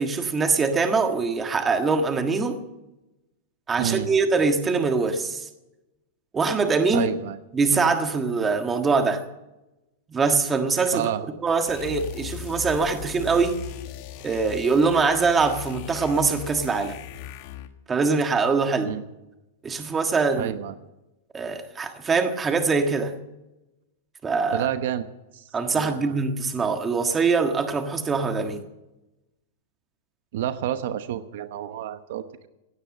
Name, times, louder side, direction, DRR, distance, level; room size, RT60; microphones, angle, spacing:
voice 1, 0.0-2.6 3.7-5.5 6.3-7.1 7.5-9.2 10.1-11.1 11.4-13.6 14.2-17.0 17.9-19.0 19.6-20.5 21.3-23.1 24.2-24.7 25.5-28.6, right 4 dB, 15° right, 6 dB, 1.5 m, -23 dB
voice 2, 3.8-4.1 6.9-7.4 10.9-11.2 18.9-19.0 20.4-20.7 24.5-25.1 25.3-25.4 25.7-26.1 30.3-32.5, right 11 dB, 65° right, 11 dB, 1.0 m, -29 dB
sound 1, 11.7-17.8, left 12 dB, 45° left, 1.4 m, -38 dB
17.0 x 9.1 x 7.4 m, 0.97 s
supercardioid pair, 150°, 0 cm